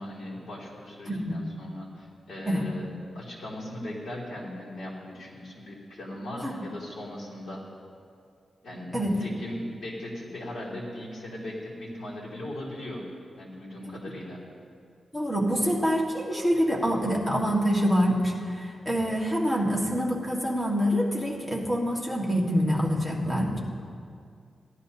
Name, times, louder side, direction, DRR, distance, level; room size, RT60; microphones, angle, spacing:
voice 1, 0.0-2.9 3.1-7.6 8.6-13.0 13.4-14.4, left 1 dB, 55° left, -6 dB, 3.1 m, -38 dB
voice 2, 1.1-1.4 2.4-2.7 6.4-6.5 8.9-9.2 15.1-23.6, equal, 5° left, -3 dB, 1.6 m, -26 dB
16.5 x 11.5 x 2.8 m, 2.3 s
wide cardioid pair, 145°, 0 cm